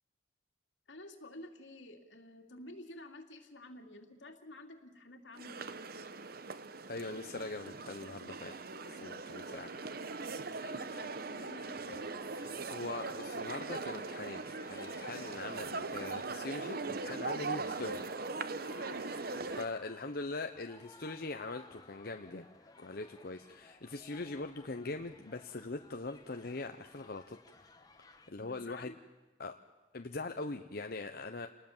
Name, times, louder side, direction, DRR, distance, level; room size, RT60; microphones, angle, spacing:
voice 1, 0.9-5.7 10.5-12.2 15.1-15.4 18.7-19.1 28.4-29.0, left 1 dB, 80° left, 4 dB, 2.7 m, -51 dB
sound 1, 5.4-19.7, right 3 dB, 55° right, 0.9 m, -40 dB
voice 2, 6.9-8.5 8.8-9.7 12.7-18.1 19.6-27.7 28.3-28.9 29.4-29.5 29.9-31.5, left 3 dB, 55° left, 5 dB, 0.9 m, -42 dB
Wind instrument woodwind instrument, 8.6-12.6, right 1 dB, 5° right, 3.1 m, -63 dB
sound 2, 11.3-28.3, left 3 dB, 20° left, 1.3 m, -59 dB
29.0 x 20.0 x 7.3 m, 1.2 s
head